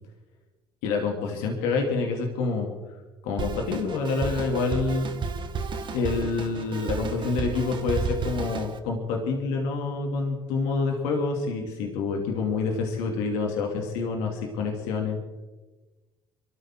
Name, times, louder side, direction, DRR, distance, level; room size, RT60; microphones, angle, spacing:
voice 1, 0.8-2.7 3.2-5.1 5.9-15.2, left 4 dB, 75° left, 1 dB, 2.7 m, -27 dB
Drum kit, 3.4-8.8, right 4 dB, 45° right, 2.0 m, -32 dB
23.5 x 14.0 x 3.8 m, 1.2 s
hypercardioid pair, 70°, 12 cm